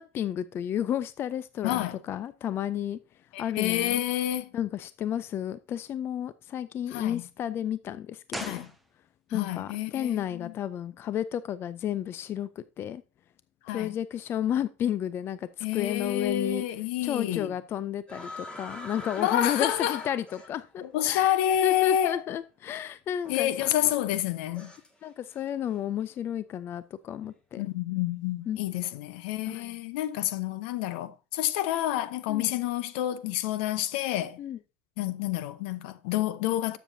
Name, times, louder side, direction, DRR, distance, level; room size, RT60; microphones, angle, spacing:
voice 1, 0.0-3.0 3.4-4.0 4.5-8.6 9.3-13.0 13.7-16.7 17.0-21.4 21.6-23.5 25.0-27.6 28.5-28.6 29.5-29.8 32.3-32.5 34.4-34.6, left 10 dB, 40° left, 0.4 m, -32 dB
voice 2, 1.6-2.0 3.3-4.5 6.9-7.2 8.4-8.7 9.3-10.5 13.6-13.9 15.6-17.5 19.2-20.0 20.8-22.2 23.3-24.7 27.6-34.4 35.0-36.8, left 12 dB, 75° left, 0.7 m, -28 dB
sound 1, 8.3-9.4 9.6-9.7, right 1 dB, ahead, 1.0 m, -40 dB
sound 2, 18.1-20.9 22.0-22.1 23.2-25.0 25.3-25.7, left 1 dB, 15° left, 1.9 m, -43 dB
12.0 x 7.1 x 2.7 m
supercardioid pair, 110°, 6 cm